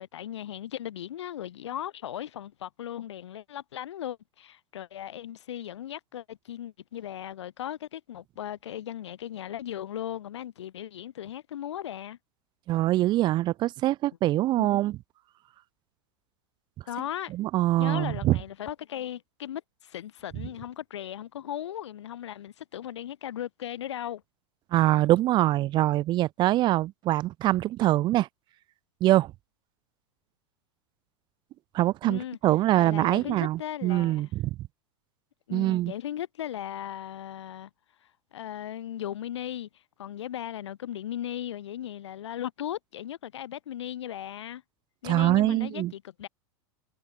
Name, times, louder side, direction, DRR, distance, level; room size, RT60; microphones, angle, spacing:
voice 1, 0.0-12.2 14.6-14.7 16.9-17.3 17.8-24.2 32.1-32.4 32.7-34.3 35.5-37.7 38.3-44.6 45.0-46.3, left 11 dB, 80° left, 0.6 m, -37 dB
voice 2, 12.7-15.0 17.3-18.4 24.7-28.3 29.0-29.3 31.7-34.5 35.5-35.9 45.0-45.9, right 15 dB, 30° right, 0.3 m, -24 dB
hypercardioid pair, 105°, 14 cm